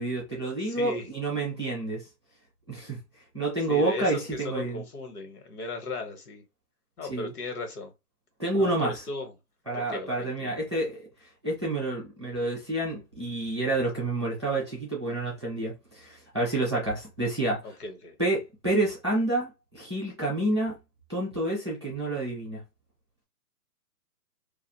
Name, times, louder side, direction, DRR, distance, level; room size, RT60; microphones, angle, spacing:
voice 1, 0.0-2.0 2.7-3.0 3.3-4.8 7.1-7.3 8.4-8.9 9.7-11.0 11.4-17.6 18.2-20.7 21.1-22.6, right 2 dB, 20° right, 0.4 m, -29 dB
voice 2, 0.6-1.1 3.7-6.4 7.0-7.9 8.6-9.3 9.7-10.7 17.6-18.1, left 2 dB, 75° left, 1.2 m, -37 dB
2.5 x 2.4 x 2.9 m
hypercardioid pair, 160°, 45 cm